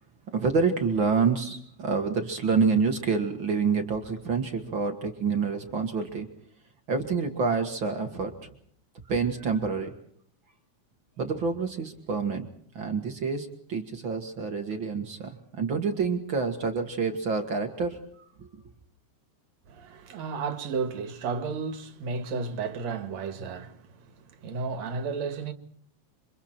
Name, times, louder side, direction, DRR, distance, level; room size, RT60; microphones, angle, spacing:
voice 1, 0.3-6.3 6.9-8.5 9.1-9.9 11.2-12.5 12.7-18.5, right 5 dB, 45° right, 2.2 m, -27 dB
voice 2, 19.7-25.5, right 5 dB, 65° right, 2.9 m, -33 dB
28.5 x 26.0 x 4.5 m
omnidirectional pair, 3.4 m